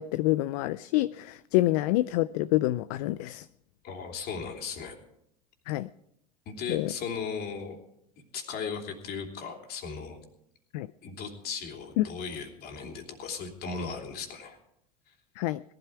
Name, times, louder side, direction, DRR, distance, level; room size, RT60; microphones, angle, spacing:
voice 1, 0.0-3.5 5.7-5.9 6.7-6.9 10.7-10.9 12.0-12.1 15.4-15.6, left 17 dB, 70° left, 16 dB, 0.4 m, -27 dB
voice 2, 3.8-5.0 6.4-7.8 8.3-10.2 11.0-14.6 15.1-15.2, left 5 dB, 50° left, 3 dB, 3.2 m, -37 dB
17.5 x 12.5 x 4.7 m, 0.78 s
hypercardioid pair, 90°, 21 cm